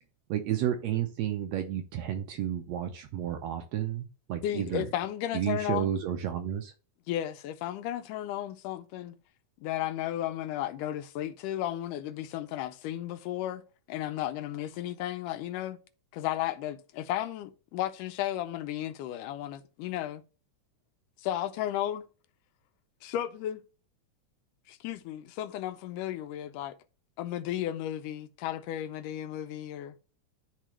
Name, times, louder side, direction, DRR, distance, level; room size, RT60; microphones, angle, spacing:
voice 1, 0.3-4.8 5.3-6.7, right 10 dB, 80° right, 1.6 m, -31 dB
voice 2, 4.4-5.9 7.1-9.2 9.6-13.6 13.9-15.8 16.1-20.2 21.2-22.0 23.0-23.6 24.7-26.8 27.2-30.0, left 12 dB, 85° left, 2.2 m, -34 dB
12.5 x 4.1 x 3.1 m
omnidirectional pair, 3.6 m